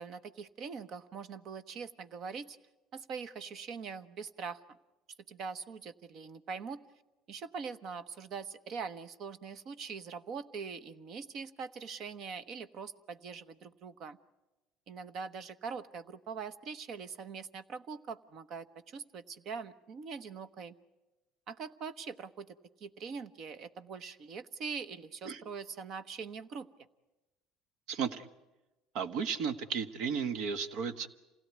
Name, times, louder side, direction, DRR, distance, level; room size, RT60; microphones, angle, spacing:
voice 1, 0.0-2.6 2.9-4.6 5.3-6.8 7.3-14.2 14.9-20.7 21.5-26.7, right 5 dB, 55° right, 14 dB, 1.1 m, -43 dB
voice 2, 27.9-28.3 28.9-31.1, right 6 dB, 70° right, 13 dB, 1.4 m, -34 dB
27.5 x 17.0 x 9.5 m, 1.1 s
cardioid pair, 115°, 0 cm